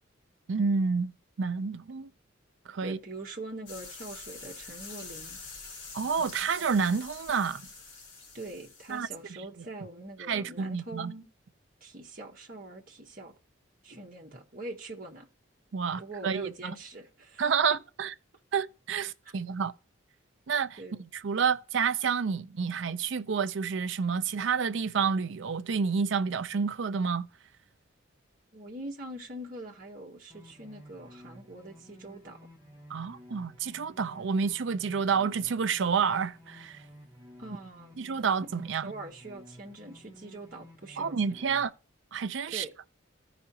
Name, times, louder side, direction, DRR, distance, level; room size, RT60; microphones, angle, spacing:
voice 1, 0.5-1.1 1.4-2.1 2.7-3.0 5.9-7.7 8.9-9.1 10.3-11.1 15.7-16.7 17.4-18.1 18.5-19.7 20.5-20.8 21.1-27.3 32.9-36.8 38.0-38.9 41.0-41.7 42.1-42.6, right 6 dB, 65° right, 0.5 m, -29 dB
voice 2, 2.8-5.4 8.3-11.3 11.8-13.3 13.8-15.3 16.0-17.4 19.0-19.1 20.8-21.0 28.5-32.4 37.4-38.0 38.8-41.4 42.5-42.7, right 2 dB, 45° right, 1.3 m, -43 dB
sound 1, 3.7-9.2, left 4 dB, 65° left, 3.4 m, -46 dB
sound 2, 30.3-41.6, equal, 15° right, 1.4 m, -53 dB
15.0 x 5.0 x 2.8 m
head